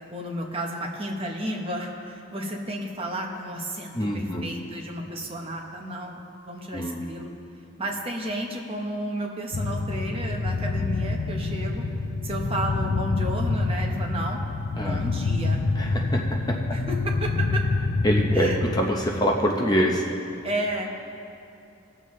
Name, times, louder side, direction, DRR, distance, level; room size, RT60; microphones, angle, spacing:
voice 1, 0.1-6.2 6.5-7.3 7.8-11.9 12.2-14.4 14.8-15.6 16.7-17.6 18.3-18.6 20.4-21.0, right 1 dB, 25° right, 1 dB, 0.9 m, -32 dB
voice 2, 3.9-4.5 6.7-7.0 14.8-15.0 15.8-16.6 18.0-20.1, equal, 20° left, 0 dB, 0.6 m, -25 dB
sound 1, 9.5-18.8, left 3 dB, 90° left, 0.6 m, -27 dB
19.0 x 7.2 x 3.2 m, 2.7 s
head